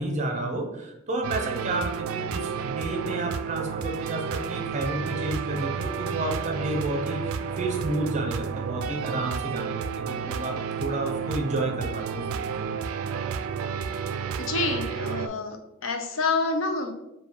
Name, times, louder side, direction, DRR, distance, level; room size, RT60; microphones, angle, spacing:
voice 1, 0.0-12.7, right 2 dB, 35° right, 3 dB, 0.6 m, -31 dB
sound 1, 1.2-15.3, right 6 dB, 90° right, 0.3 m, -31 dB
voice 2, 14.4-16.9, left 3 dB, 70° left, 6 dB, 0.5 m, -28 dB
5.1 x 2.3 x 3.3 m, 0.91 s
head